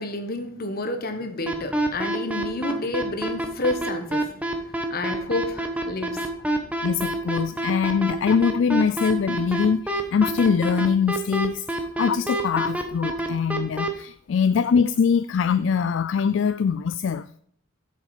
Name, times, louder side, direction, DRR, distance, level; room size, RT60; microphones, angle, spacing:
voice 1, 0.0-4.4 4.8-6.3, left 2 dB, 45° left, 1.3 m, -30 dB
sound 1, 1.5-13.9, right 1 dB, 5° right, 1.1 m, -26 dB
voice 2, 6.8-11.7 12.0-17.3, left 6 dB, 65° left, 0.3 m, -23 dB
8.5 x 6.7 x 5.0 m
head